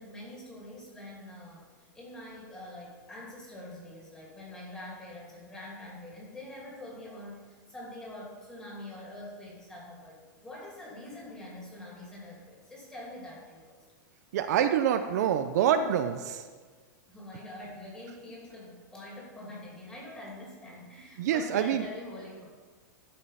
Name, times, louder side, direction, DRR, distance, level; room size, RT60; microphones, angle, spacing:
voice 1, 0.0-13.8 17.1-22.4, left 1 dB, 5° left, -5 dB, 2.6 m, -45 dB
voice 2, 14.3-16.5 21.2-21.8, right 9 dB, 55° right, 8 dB, 0.5 m, -26 dB
12.5 x 5.3 x 5.6 m, 1.5 s
supercardioid pair, 170°, 11 cm